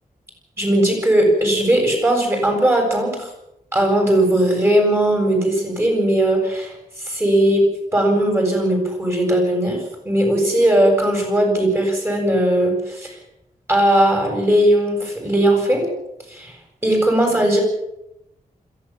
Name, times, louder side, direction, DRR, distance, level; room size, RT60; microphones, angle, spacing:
voice 1, 0.6-3.3 3.7-6.7 7.0-7.7 7.9-13.1 13.7-15.9 16.3-16.5 16.8-17.6, right 1 dB, 15° right, 2 dB, 7.6 m, -18 dB
22.0 x 16.0 x 7.5 m, 0.85 s
wide cardioid pair, 155°, 15 cm